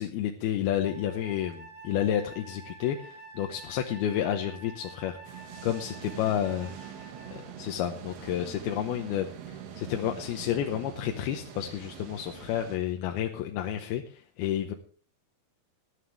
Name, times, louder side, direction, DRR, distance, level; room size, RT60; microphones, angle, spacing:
voice 1, 0.0-6.7 7.3-14.7, left 10 dB, 85° left, 4 dB, 2.9 m, -31 dB
Wind instrument woodwind instrument, 0.8-7.6, right 3 dB, 60° right, 6.3 m, -48 dB
sound 1, 5.2-12.8, right 8 dB, 85° right, 3.6 m, -44 dB
19.0 x 11.5 x 3.3 m, 0.42 s
omnidirectional pair, 4.4 m